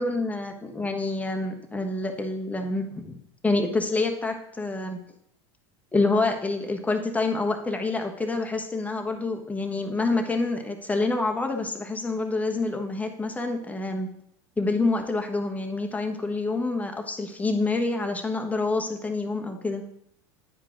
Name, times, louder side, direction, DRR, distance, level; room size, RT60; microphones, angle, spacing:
voice 1, 0.0-3.2 3.4-5.0 5.9-14.1 14.6-19.8, left 3 dB, 10° left, 4 dB, 1.1 m, -27 dB
9.8 x 4.7 x 3.7 m, 0.71 s
hypercardioid pair, 95°, 15 cm